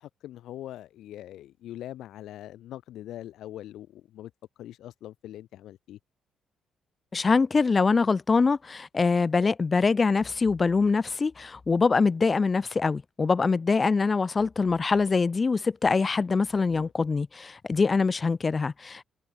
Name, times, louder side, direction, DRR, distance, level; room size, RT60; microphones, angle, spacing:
voice 1, 0.0-4.3 4.6-6.0 16.7-16.9, left 13 dB, 80° left, 4.3 m, -42 dB
voice 2, 7.1-19.0, left 4 dB, 30° left, 0.9 m, -24 dB
cardioid pair, 90°, 0 cm